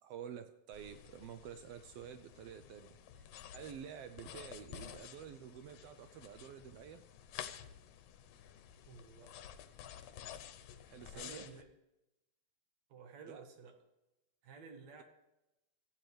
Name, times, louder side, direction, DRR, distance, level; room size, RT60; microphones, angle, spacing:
voice 1, 0.0-7.0 10.1-10.2 10.9-11.5 13.3-13.4, right 9 dB, 85° right, 10 dB, 1.3 m, -50 dB
sound 1, 0.7-11.6, left 10 dB, 80° left, 2.2 m, -52 dB
voice 2, 8.9-9.3 11.1-11.7 12.9-13.8 14.4-15.0, right 5 dB, 65° right, 4 dB, 2.5 m, -53 dB
15.5 x 8.8 x 3.3 m, 0.94 s
omnidirectional pair, 3.4 m